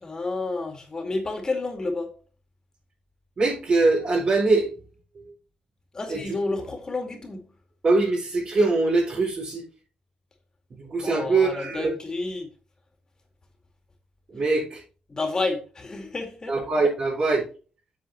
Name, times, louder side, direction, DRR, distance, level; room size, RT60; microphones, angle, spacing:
voice 1, 0.0-2.1 5.9-7.5 11.0-12.5 15.1-16.6, left 3 dB, 30° left, 2.2 m, -30 dB
voice 2, 3.4-4.7 5.1-5.3 6.1-6.2 7.8-9.6 10.7-11.9 14.3-14.8 16.5-17.4, right 3 dB, 45° right, 4.7 m, -23 dB
8.4 x 7.7 x 3.1 m
cardioid pair, 115°, 2 cm